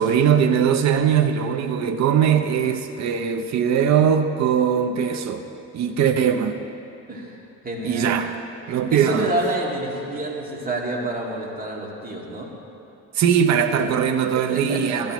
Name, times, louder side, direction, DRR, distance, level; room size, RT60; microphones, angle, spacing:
voice 1, 0.0-5.4 5.7-6.6 7.8-8.3 8.7-9.3 13.1-15.1, right 8 dB, 65° right, 6 dB, 0.7 m, -20 dB
voice 2, 7.1-7.4 7.6-8.2 8.9-12.5 13.8-13.9 14.4-15.1, right 1 dB, 30° right, -3 dB, 2.4 m, -28 dB
16.5 x 13.0 x 3.0 m, 2.8 s
cardioid pair, 90°, 30 cm